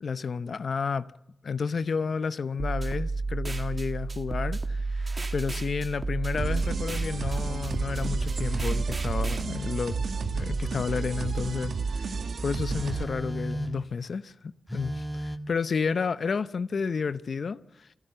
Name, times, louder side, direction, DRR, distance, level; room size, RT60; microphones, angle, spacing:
voice 1, 0.0-1.1 1.4-10.0 10.3-17.9, left 5 dB, 75° left, 0.7 m, -31 dB
sound 1, 2.6-9.4, right 3 dB, 40° right, 1.9 m, -31 dB
sound 2, 6.4-13.0, right 4 dB, 85° right, 1.9 m, -32 dB
Telephone, 9.5-9.8 10.7-11.8 12.7-13.9 14.7-15.4, equal, 5° left, 1.9 m, -36 dB
26.5 x 12.5 x 7.9 m
cardioid pair, 50°, 0 cm